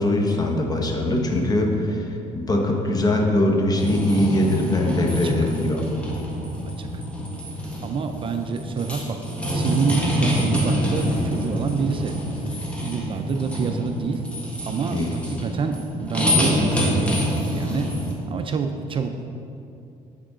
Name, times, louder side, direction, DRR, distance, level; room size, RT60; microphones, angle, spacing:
voice 1, 0.0-5.8 14.9-15.1, left 1 dB, 25° left, 2 dB, 1.0 m, -22 dB
sound 1, 3.7-18.1, equal, 10° left, 1.3 m, -26 dB
voice 2, 5.1-5.5 6.8-7.0 7.8-14.2 14.7-17.9 18.3-19.3, right 5 dB, 40° right, 6 dB, 0.4 m, -28 dB
7.5 x 6.3 x 3.7 m, 2.6 s
cardioid pair, 110°, 14 cm